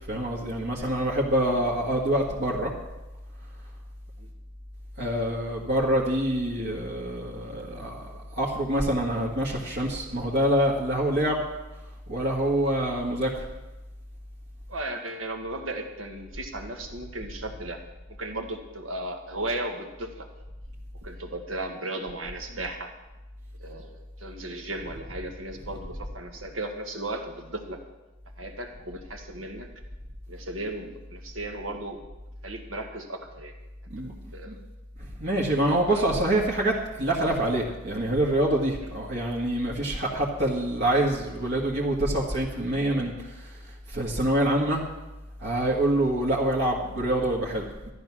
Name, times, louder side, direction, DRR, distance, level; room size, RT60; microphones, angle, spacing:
voice 1, 0.1-2.7 5.0-11.4 12.1-13.5 33.9-34.1 34.5-34.6 35.2-43.6 43.9-44.8 45.4-47.9, right 1 dB, 55° right, -4 dB, 1.8 m, -26 dB
voice 2, 14.7-17.8 18.1-20.3 21.0-22.9 23.6-27.8 28.4-29.7 30.3-32.0 32.4-33.5 34.0-34.5 35.7-36.1 45.9-46.0, right 1 dB, 80° right, 4 dB, 1.8 m, -36 dB
13.5 x 10.0 x 6.1 m, 1.0 s
head